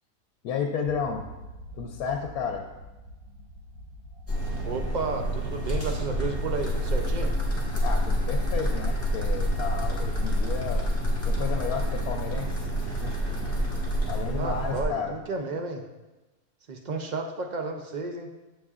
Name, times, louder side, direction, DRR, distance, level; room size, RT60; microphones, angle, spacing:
voice 1, 0.4-1.3 1.7-2.7 7.8-10.9 11.2-13.7 14.1-15.2, left 6 dB, 85° left, 4 dB, 1.1 m, -32 dB
sound 1, 0.8-13.5, equal, 75° right, 2.3 m, -42 dB
sound 2, 4.3-14.8, equal, 10° left, 1.3 m, -28 dB
voice 2, 4.6-7.3 14.4-15.8 16.7-18.3, right 3 dB, 60° right, 4 dB, 0.4 m, -32 dB
9.6 x 7.3 x 2.4 m, 1.1 s
omnidirectional pair, 1.5 m